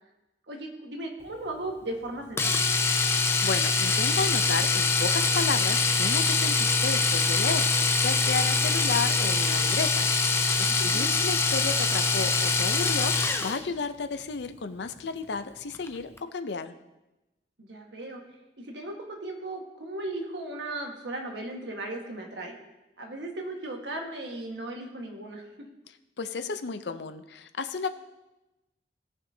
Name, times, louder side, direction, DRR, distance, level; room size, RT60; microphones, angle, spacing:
voice 1, 0.5-2.7 10.9-11.1 17.6-18.2 18.6-22.6 23.0-25.5, right 2 dB, 90° right, 2 dB, 1.6 m, -37 dB
Domestic sounds home sounds, 2.4-13.6 15.7-15.9 16.2-16.3, left 4 dB, 15° left, 0.4 m, -24 dB
voice 2, 3.4-16.7 26.2-27.9, left 4 dB, 80° left, 9 dB, 0.6 m, -33 dB
17.5 x 6.1 x 2.8 m, 1.0 s
head